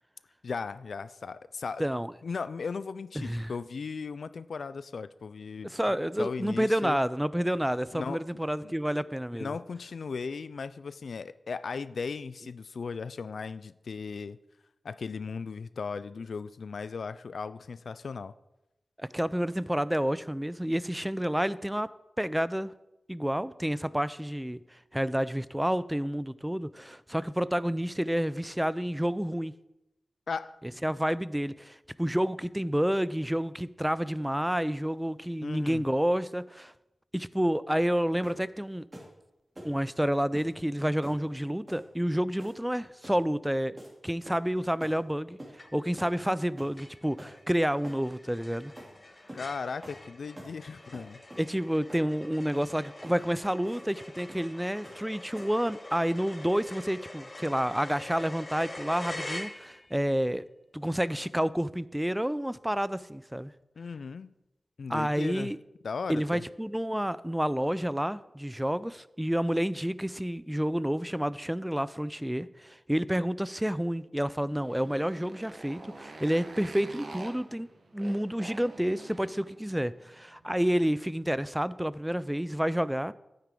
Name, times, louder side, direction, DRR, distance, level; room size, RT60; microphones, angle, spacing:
voice 1, 0.4-1.8 2.2-5.7 6.2-7.0 7.9-8.2 8.6-8.7 9.3-14.4 14.8-18.3 30.3-30.6 35.4-35.8 49.3-51.2 63.8-64.3 64.8-65.5 65.8-66.4, left 5 dB, 85° left, 15 dB, 0.3 m, -37 dB
voice 2, 1.8-2.1 3.2-3.5 5.6-9.5 19.0-21.9 22.2-22.7 23.1-24.6 24.9-29.5 30.8-36.7 37.1-38.9 39.6-43.8 44.0-48.7 51.4-60.4 60.7-63.5 64.9-65.6 66.1-77.7 77.9-83.1, equal, 5° right, 17 dB, 0.3 m, -29 dB
sound 1, 38.2-38.5 38.9-39.1 39.5-39.8 40.3-40.5 41.0-41.2 41.7-41.9 42.4-42.7 43.0-43.2 43.8-43.9 44.2-44.5 44.8-45.0 45.4-45.6 46.0-46.2 46.6-46.8 47.2-47.3 47.8-48.0 48.8-48.9 49.3-49.5 49.8-50.0 50.3-50.6 50.9-51.5 51.9-52.1 52.4-52.6 53.0-53.2 53.6-53.9 54.3-54.5 54.8-55.0 55.3-55.6, right 1 dB, 30° right, 3.1 m, -46 dB
sound 2, 45.6-46.0 46.4-46.5 46.8-60.0, left 1 dB, 40° left, 1.4 m, -45 dB
Motorcycle, 74.5-81.0, right 2 dB, 70° right, 1.2 m, -47 dB
9.4 x 8.9 x 3.8 m, 0.92 s
wide cardioid pair, 60°, 0 cm